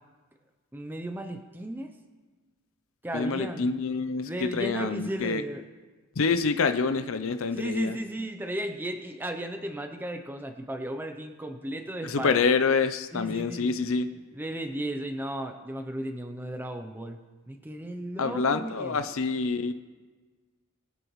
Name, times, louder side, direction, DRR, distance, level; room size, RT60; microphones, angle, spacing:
voice 1, 0.7-1.9 3.0-3.7 4.2-5.6 7.5-12.5 13.1-13.8 14.3-17.2 17.5-19.0, right 1 dB, 10° right, 5 dB, 0.6 m, -35 dB
voice 2, 3.1-5.4 6.2-8.0 12.0-14.1 18.2-19.7, left 4 dB, 65° left, 10 dB, 0.6 m, -27 dB
22.0 x 8.0 x 3.1 m, 1.3 s
head